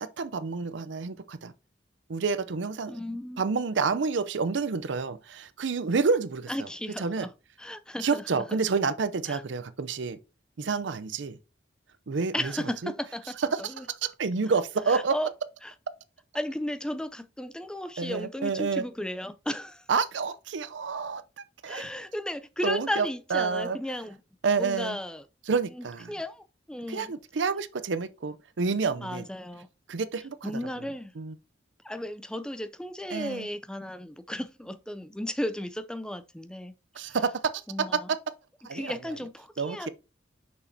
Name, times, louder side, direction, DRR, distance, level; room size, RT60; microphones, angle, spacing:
voice 1, 0.0-1.5 2.1-2.9 3.4-6.5 7.0-7.3 8.0-10.2 10.6-11.4 12.1-12.5 12.8-12.9 13.4-15.2 18.0-18.8 19.9-21.9 22.6-23.8 24.4-25.0 25.5-26.1 26.9-29.3 29.9-30.5 31.2-31.3 33.1-33.5 36.9-37.6 37.9-38.2 38.6-38.9 39.6-39.9, right 5 dB, 80° right, 0.6 m, -29 dB
voice 2, 2.9-3.6 6.5-7.3 7.6-8.4 9.3-9.4 12.3-13.9 14.9-15.3 15.6-15.7 16.3-19.9 21.7-24.2 24.5-25.2 25.7-27.1 29.0-29.7 30.4-31.1 31.8-37.2 37.7-38.1 38.7-39.9, left 1 dB, 5° left, 0.4 m, -35 dB
6.2 x 5.7 x 2.7 m
head